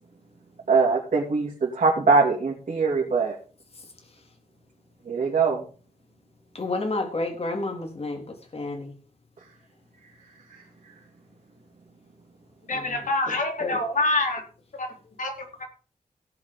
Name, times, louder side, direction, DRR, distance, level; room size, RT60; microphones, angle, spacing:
voice 1, 0.7-3.3 5.1-5.6 10.5-10.6, right 4 dB, 65° right, -3 dB, 3.1 m, -22 dB
voice 2, 3.7-4.2 6.5-8.9 12.7-13.8, left 2 dB, 45° left, 2 dB, 3.5 m, -32 dB
voice 3, 12.7-14.4 14.8-14.9 15.2-15.3 15.6-15.7, left 2 dB, 75° left, 1 dB, 4.0 m, -25 dB
17.0 x 5.9 x 5.4 m, 0.40 s
wide cardioid pair, 130°, 14 cm